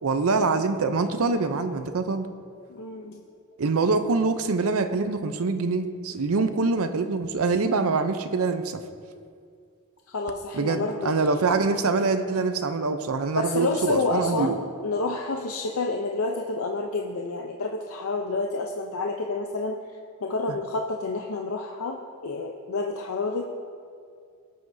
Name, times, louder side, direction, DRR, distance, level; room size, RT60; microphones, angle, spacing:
voice 1, 0.0-2.3 3.6-8.8 10.5-14.6, right 4 dB, 80° right, 9 dB, 0.6 m, -24 dB
voice 2, 2.7-3.2 10.1-11.2 13.4-19.8 20.2-22.0 22.2-23.4, left 3 dB, 80° left, 1 dB, 0.6 m, -29 dB
18.0 x 7.8 x 2.7 m, 2.2 s
head